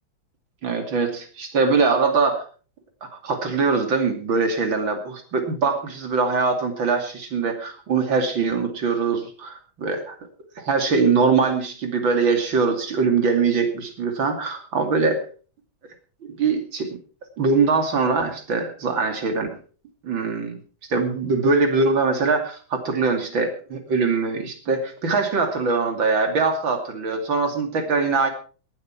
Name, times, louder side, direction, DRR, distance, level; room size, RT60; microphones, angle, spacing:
voice 1, 0.6-2.4 3.0-10.2 10.6-15.2 16.3-17.0 17.4-19.5 20.0-20.6 20.9-28.3, right 4 dB, 70° right, 6 dB, 3.3 m, -22 dB
18.0 x 12.0 x 4.5 m, 0.39 s
omnidirectional pair, 2.2 m